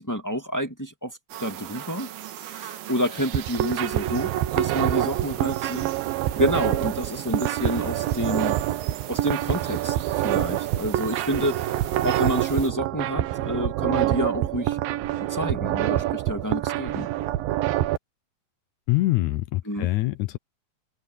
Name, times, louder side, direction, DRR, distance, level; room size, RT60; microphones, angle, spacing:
voice 1, 0.0-2.1 2.4-5.9 6.3-8.6 9.1-14.8 15.3-17.1 19.6-19.9, equal, 10° left, 0.8 m, -29 dB
sound 1, 1.3-12.7, right 12 dB, 70° right, 2.7 m, -40 dB
sound 2, 3.2-18.0, right 14 dB, 90° right, 2.7 m, -26 dB
voice 2, 18.9-20.4, left 18 dB, 75° left, 1.8 m, -24 dB
omnidirectional pair, 4.0 m